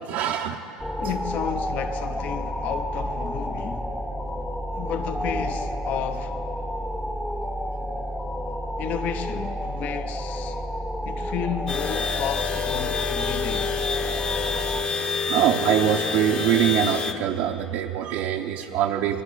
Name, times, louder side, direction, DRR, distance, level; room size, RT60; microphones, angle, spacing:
voice 1, 0.1-0.6 15.3-19.2, right 10 dB, 65° right, 0.6 m, -23 dB
sound 1, 0.8-14.8, equal, 5° left, 0.7 m, -30 dB
voice 2, 1.0-3.9 4.8-6.4 8.8-10.6 11.1-13.7, left 8 dB, 50° left, 0.7 m, -32 dB
sound 2, 11.7-17.1, left 5 dB, 35° left, 1.1 m, -27 dB
19.5 x 11.5 x 4.9 m
supercardioid pair, 100°, 3 cm